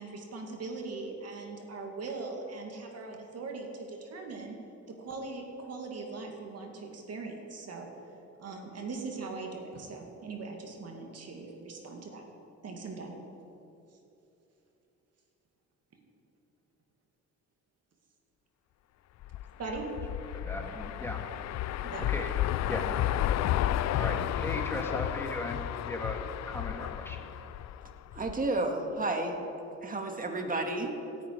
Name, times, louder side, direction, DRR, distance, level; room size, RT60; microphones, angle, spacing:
voice 1, 0.0-4.6 4.9-7.9 8.4-12.2 12.6-13.2 19.6-19.9 21.8-22.2, right 3 dB, 55° right, 2 dB, 2.3 m, -40 dB
sound 1, 19.2-28.5, left 12 dB, 60° left, 0.4 m, -32 dB
voice 2, 20.3-21.2 22.1-22.3 22.7-23.3 24.0-25.6 25.9-26.2 26.5-27.2, left 1 dB, 10° left, 2 dB, 2.0 m, -37 dB
voice 3, 28.1-29.3 29.8-30.9, right 2 dB, 30° right, 3 dB, 1.9 m, -31 dB
17.5 x 10.0 x 4.8 m, 3.0 s
cardioid pair, 90°, 30 cm